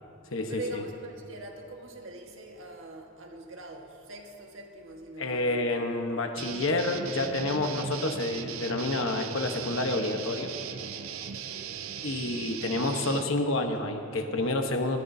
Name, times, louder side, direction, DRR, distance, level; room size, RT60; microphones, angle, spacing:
voice 1, 0.5-5.7 11.3-11.9, right 1 dB, 65° right, 1 dB, 1.5 m, -43 dB
voice 2, 5.2-10.5 12.0-15.0, left 2 dB, 70° left, 5 dB, 1.1 m, -29 dB
sound 1, 6.4-13.2, right 7 dB, 80° right, 0.6 m, -38 dB
20.5 x 18.0 x 2.8 m, 2.7 s
head